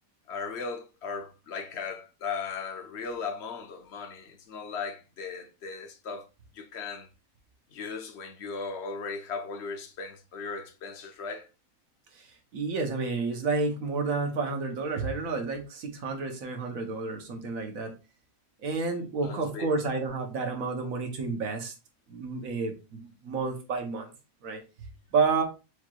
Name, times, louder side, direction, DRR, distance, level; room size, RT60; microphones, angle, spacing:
voice 1, 0.3-6.2 6.5-7.1 7.7-11.5 19.2-19.7, left 5 dB, 60° left, 0.9 m, -37 dB
voice 2, 12.1-17.9 18.6-21.7 22.1-24.1 24.4-24.6 25.1-25.4, right 4 dB, 75° right, 1.4 m, -30 dB
6.4 x 3.0 x 2.4 m
omnidirectional pair, 1.5 m